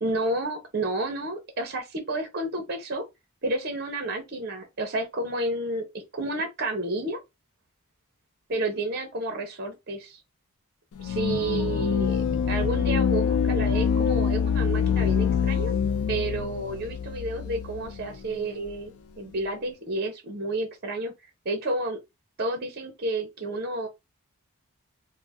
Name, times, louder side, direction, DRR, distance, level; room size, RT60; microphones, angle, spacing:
voice 1, 0.0-3.0 3.4-7.2 8.5-10.2 11.0-15.7 16.1-21.1 21.4-22.0 22.4-23.9, right 2 dB, 45° right, 0.6 m, -30 dB
sound 1, 11.0-18.2, left 7 dB, 85° left, 0.4 m, -25 dB
2.5 x 2.0 x 3.3 m
head